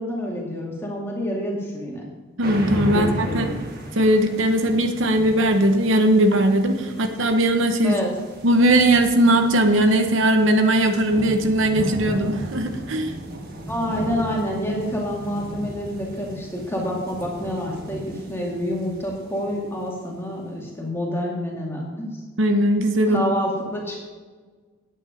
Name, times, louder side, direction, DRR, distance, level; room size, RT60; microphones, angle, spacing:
voice 1, 0.0-2.0 2.9-3.6 7.8-8.1 13.7-22.1 23.1-24.0, equal, 10° left, -2 dB, 2.2 m, -28 dB
sound 1, 2.4-20.2, right 1 dB, 45° right, 1.6 m, -35 dB
voice 2, 2.4-3.4 3.9-7.9 8.4-13.1 22.4-23.2, right 1 dB, 70° right, 5 dB, 0.9 m, -19 dB
10.0 x 8.7 x 5.2 m, 1.4 s
head